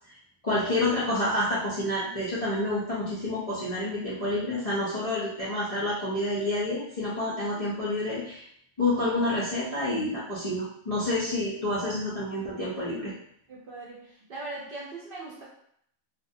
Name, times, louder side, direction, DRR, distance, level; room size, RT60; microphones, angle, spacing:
voice 1, 0.4-8.4 8.8-13.1, left 1 dB, 45° left, -10 dB, 0.5 m, -28 dB
voice 2, 13.5-15.4, right 2 dB, 55° right, -6 dB, 0.7 m, -40 dB
2.5 x 2.2 x 2.6 m, 0.69 s
omnidirectional pair, 1.3 m